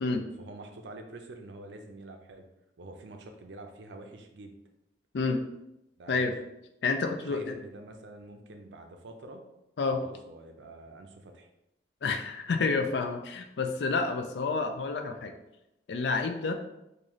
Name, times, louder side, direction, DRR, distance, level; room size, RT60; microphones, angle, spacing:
voice 1, 0.4-2.5 2.8-4.6 6.0-6.3 7.2-9.4 9.9-11.5, right 2 dB, 90° right, 4 dB, 0.5 m, -46 dB
voice 2, 6.8-7.5 9.8-10.0 12.0-15.3 15.9-16.5, left 4 dB, 75° left, 6 dB, 0.4 m, -29 dB
3.8 x 2.6 x 3.1 m, 0.89 s
head